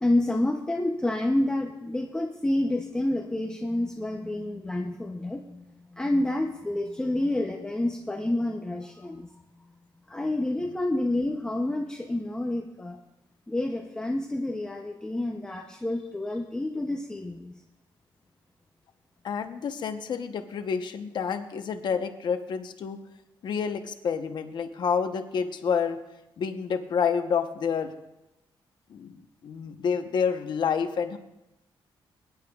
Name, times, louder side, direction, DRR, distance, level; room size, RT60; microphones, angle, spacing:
voice 1, 0.0-5.6 5.9-9.3 10.1-13.0 13.5-17.5, left 1 dB, 10° left, 2 dB, 0.6 m, -28 dB
voice 2, 19.2-23.0 23.4-26.0 26.4-27.9 28.9-31.2, left 6 dB, 60° left, 7 dB, 0.9 m, -29 dB
22.5 x 10.5 x 2.4 m, 0.93 s
wide cardioid pair, 155°, 9 cm